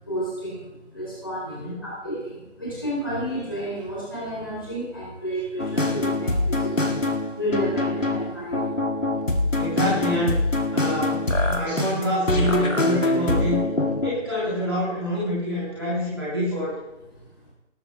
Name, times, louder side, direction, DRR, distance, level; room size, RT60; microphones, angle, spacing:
voice 1, 0.1-7.0 7.3-9.0 11.4-11.5, equal, 20° left, -7 dB, 4.1 m, -31 dB
voice 2, 1.4-1.8 9.6-10.4 10.7-13.6 14.0-16.8, equal, 20° right, -10 dB, 3.3 m, -26 dB
sound 1, 5.6-14.1, left 2 dB, 80° left, 2.4 m, -24 dB
19.5 x 9.2 x 3.6 m, 0.98 s
figure-of-eight pair, 175°, 38 cm